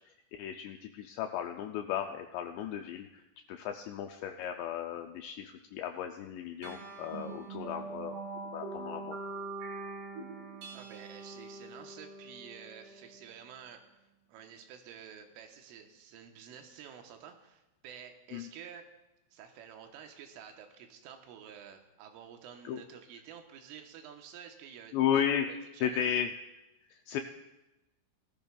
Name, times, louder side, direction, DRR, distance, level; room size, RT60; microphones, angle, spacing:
voice 1, 0.1-3.2 3.5-8.2 8.5-9.2 18.3-18.5 22.7-22.8 24.9-25.5 25.8-26.3 26.9-27.2, left 9 dB, 85° left, 5 dB, 2.5 m, -34 dB
sound 1, 6.6-13.5, right 3 dB, 60° right, 2.9 m, -43 dB
voice 2, 10.7-18.9 19.3-25.2 25.5-26.1, right 8 dB, 85° right, 4 dB, 3.6 m, -50 dB
19.0 x 14.0 x 2.3 m, 0.98 s
omnidirectional pair, 5.6 m